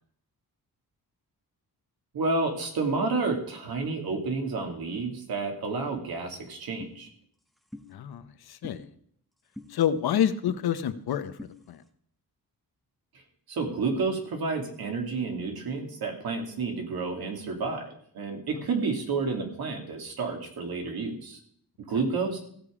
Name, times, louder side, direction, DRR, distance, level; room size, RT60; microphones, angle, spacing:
voice 1, 2.1-7.1 13.5-21.4 21.9-22.4, right 4 dB, 80° right, 3 dB, 2.5 m, -30 dB
sound 1, 6.8-7.0 7.7-7.9 8.6-8.8 9.6-9.7 10.5-10.6 11.4-11.5, left 1 dB, ahead, 0.7 m, -41 dB
voice 2, 7.9-8.8 9.7-11.3 11.7-11.8, left 9 dB, 85° left, 11 dB, 0.9 m, -27 dB
15.5 x 7.2 x 5.0 m, 0.63 s
wide cardioid pair, 165°, 36 cm